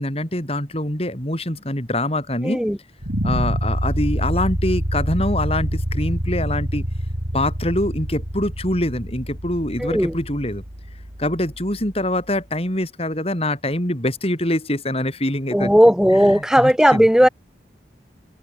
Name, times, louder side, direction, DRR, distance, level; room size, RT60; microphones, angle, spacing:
voice 1, 0.0-2.6 3.2-6.9 7.3-10.6 11.2-15.7 16.1-17.1, left 1 dB, 35° left, 7.3 m, -24 dB
voice 2, 2.4-2.8 9.8-10.1 15.5-17.3, equal, 5° right, 3.4 m, -15 dB
sound 1, 3.0-12.0, equal, 70° right, 6.2 m, -26 dB
head